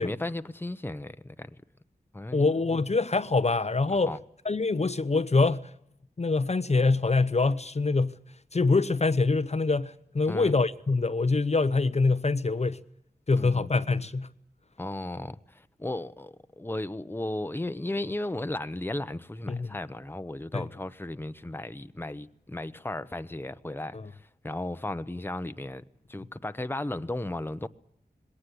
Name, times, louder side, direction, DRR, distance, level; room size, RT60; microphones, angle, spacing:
voice 1, 0.0-1.5 2.1-2.5 4.1-4.2 10.3-10.5 13.4-13.7 14.8-25.8 26.1-27.7, left 1 dB, 15° left, 0.9 m, -35 dB
voice 2, 2.3-4.1 4.4-5.7 6.2-8.2 8.5-12.8 13.3-14.3 19.5-19.7 20.5-20.7 23.9-24.1, left 3 dB, 40° left, 0.8 m, -25 dB
20.5 x 18.0 x 10.0 m
wide cardioid pair, 70°, 16 cm